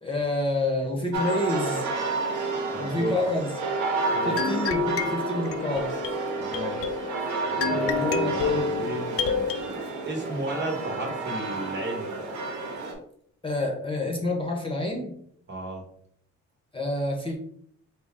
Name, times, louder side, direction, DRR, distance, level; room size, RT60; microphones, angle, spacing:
voice 1, 0.0-1.9 2.8-3.5 4.2-6.0 7.7-8.6 13.4-15.1 16.7-17.4, left 1 dB, 15° left, -1 dB, 1.0 m, -28 dB
sound 1, 1.1-12.9, right 3 dB, 75° right, 1.0 m, -30 dB
voice 2, 2.7-3.1 4.1-4.5 6.4-7.1 7.5-12.2 15.5-15.8, right 2 dB, 35° right, 0 dB, 1.2 m, -34 dB
sound 2, 4.4-9.6, left 6 dB, 50° left, 0.4 m, -29 dB
4.0 x 2.3 x 3.7 m, 0.65 s
cardioid pair, 90°, 30 cm